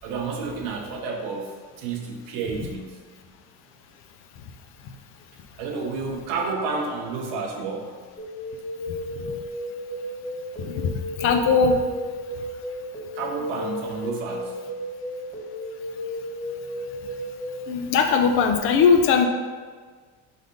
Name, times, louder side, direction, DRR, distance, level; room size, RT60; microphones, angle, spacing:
voice 1, 0.0-3.0 5.6-8.0 13.1-14.6, right 4 dB, 90° right, 0 dB, 1.2 m, -30 dB
sound 1, 8.2-17.7, left 1 dB, 5° left, 1.4 m, -34 dB
voice 2, 11.2-11.8 17.7-19.3, left 5 dB, 45° left, 6 dB, 0.6 m, -19 dB
4.9 x 4.1 x 5.4 m, 1.5 s
cardioid pair, 180°, 30 cm